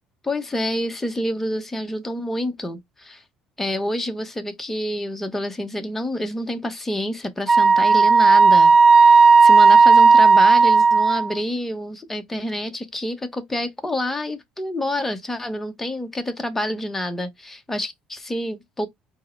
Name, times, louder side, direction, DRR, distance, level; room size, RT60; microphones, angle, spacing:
voice 1, 0.2-3.2 3.6-18.9, left 1 dB, 10° left, 0.8 m, -28 dB
Wind instrument woodwind instrument, 7.5-11.3, right 4 dB, 20° right, 0.4 m, -13 dB
4.5 x 2.1 x 4.2 m
cardioid pair, 125°, 3 cm